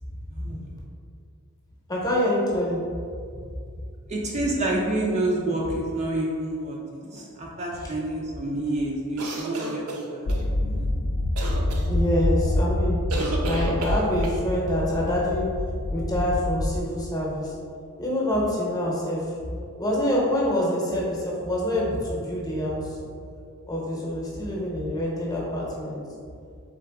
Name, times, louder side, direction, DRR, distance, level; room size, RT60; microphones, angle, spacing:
voice 1, 0.3-0.7 4.1-10.9, right 1 dB, 30° right, -2 dB, 0.4 m, -28 dB
voice 2, 1.9-2.8 11.9-13.0 13.4-15.5 15.9-17.5 18.0-19.2 19.8-23.0 23.7-26.0, left 1 dB, 15° left, -4 dB, 0.8 m, -26 dB
sound 1, 9.2-10.4 11.4-11.8 13.1-14.4, right 2 dB, 80° right, 0.6 m, -31 dB
sound 2, 10.3-16.8, left 1 dB, 70° left, 0.4 m, -26 dB
3.8 x 3.7 x 3.4 m, 2.3 s
head